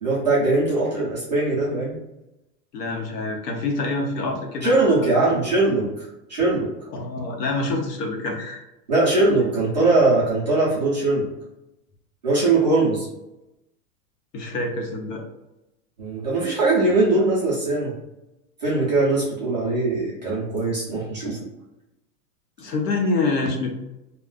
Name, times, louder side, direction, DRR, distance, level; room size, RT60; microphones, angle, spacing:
voice 1, 0.0-2.0 4.6-6.7 8.9-11.3 12.2-13.1 16.0-17.9 18.6-21.5, right 2 dB, 30° right, -7 dB, 0.4 m, -21 dB
voice 2, 2.7-5.5 6.9-8.6 14.3-15.2 22.6-23.7, left 3 dB, 75° left, 1 dB, 0.9 m, -26 dB
2.3 x 2.2 x 3.6 m, 0.93 s
supercardioid pair, 180°, 48 cm